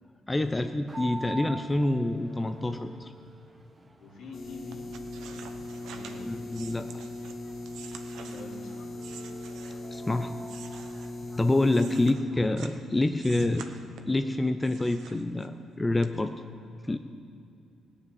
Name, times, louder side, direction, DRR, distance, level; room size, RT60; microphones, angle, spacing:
voice 1, 0.3-3.1 6.3-7.0 9.9-10.3 11.4-13.7 14.0-16.3 16.8-17.0, left 2 dB, 15° left, 7 dB, 0.7 m, -27 dB
sound 1, 0.9-12.8, right 2 dB, 20° right, 1.3 m, -47 dB
voice 2, 4.0-6.3 8.2-9.0 11.8-12.4 13.3-13.6, left 3 dB, 80° left, -3 dB, 3.5 m, -47 dB
sound 2, 4.3-12.1, left 1 dB, 50° left, 1.9 m, -39 dB
sound 3, 4.7-10.0 10.4-12.8 13.2-14.2 14.6-15.7 16.0-16.1, right 7 dB, 80° right, 1.0 m, -48 dB
16.5 x 7.1 x 9.7 m, 2.5 s
cardioid pair, 90°, 0 cm